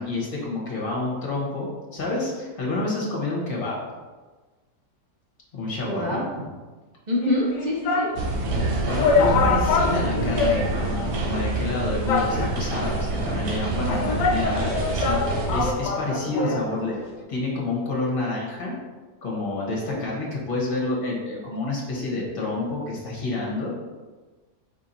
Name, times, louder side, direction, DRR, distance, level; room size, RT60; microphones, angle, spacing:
voice 1, 0.0-3.8 5.5-6.2 8.9-17.0 17.3-18.7 19.2-23.7, left 2 dB, 35° left, -4 dB, 1.2 m, -29 dB
voice 2, 5.8-6.5 7.1-8.1 19.8-20.0, left 1 dB, 50° right, -4 dB, 0.5 m, -26 dB
sound 1, 7.2-8.2 8.6-8.7 9.0-11.0 11.3-11.4 12.1-12.8 13.5-16.7 17.0-17.1, left 4 dB, 70° left, 0.8 m, -25 dB
sound 2, 8.2-15.7, right 2 dB, 85° right, 1.3 m, -26 dB
4.6 x 4.2 x 2.7 m, 1.3 s
omnidirectional pair, 1.8 m